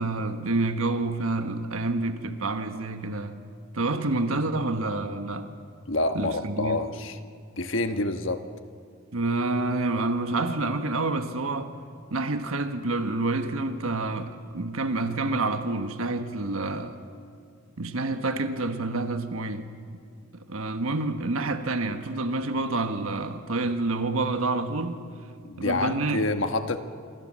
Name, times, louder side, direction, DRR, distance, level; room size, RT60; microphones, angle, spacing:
voice 1, 0.0-3.4 3.7-5.5 6.1-6.8 9.1-11.7 12.1-17.0 17.8-19.7 20.3-25.0 25.6-26.5, right 2 dB, 75° right, 1.4 m, -28 dB
voice 2, 5.9-7.2 7.6-8.4 25.4-26.8, left 2 dB, 60° left, 1.3 m, -27 dB
27.5 x 24.0 x 7.5 m
head